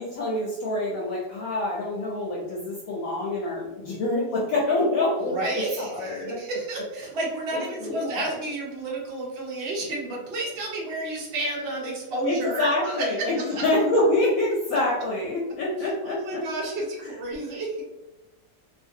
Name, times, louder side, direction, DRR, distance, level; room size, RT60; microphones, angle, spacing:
voice 1, 0.0-5.3 5.8-6.4 7.5-8.4 12.2-16.4 17.0-17.1, left 2 dB, 70° left, -4 dB, 1.0 m, -26 dB
voice 2, 5.2-13.6 16.0-17.8, right 2 dB, 60° right, -3 dB, 0.6 m, -31 dB
2.6 x 2.5 x 2.6 m, 1.0 s
omnidirectional pair, 1.7 m